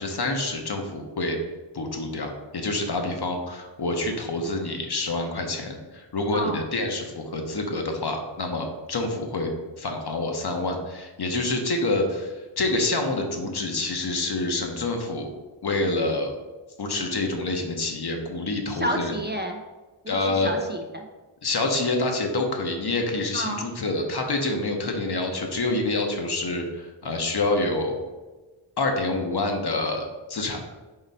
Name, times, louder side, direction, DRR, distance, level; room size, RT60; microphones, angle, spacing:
voice 1, 0.0-1.4 1.7-9.5 9.8-15.3 15.6-16.3 16.8-19.1 20.1-20.5 21.4-28.0 28.8-30.6, left 2 dB, 50° left, 3 dB, 0.9 m, -27 dB
voice 2, 6.3-6.7 18.7-19.6 20.0-21.1 23.3-23.7, equal, 25° right, 3 dB, 0.3 m, -30 dB
4.0 x 3.1 x 4.0 m, 1.2 s
cardioid pair, 45°, 49 cm